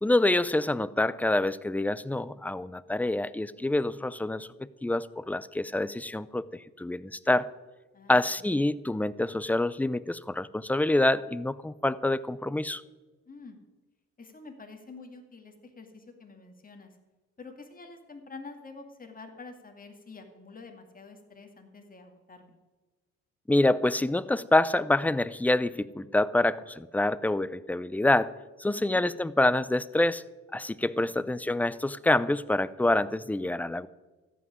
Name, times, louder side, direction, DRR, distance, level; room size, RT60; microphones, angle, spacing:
voice 1, 0.0-7.5 8.1-12.8 23.5-28.3 28.6-30.2 30.5-33.9, left 2 dB, 5° left, 18 dB, 0.5 m, -26 dB
voice 2, 7.9-8.4 13.3-13.6 14.2-16.9 17.4-22.5 28.6-29.0 31.0-31.4, left 3 dB, 25° left, 4 dB, 2.2 m, -47 dB
14.0 x 6.1 x 9.3 m, 1.2 s
supercardioid pair, 75°, 31 cm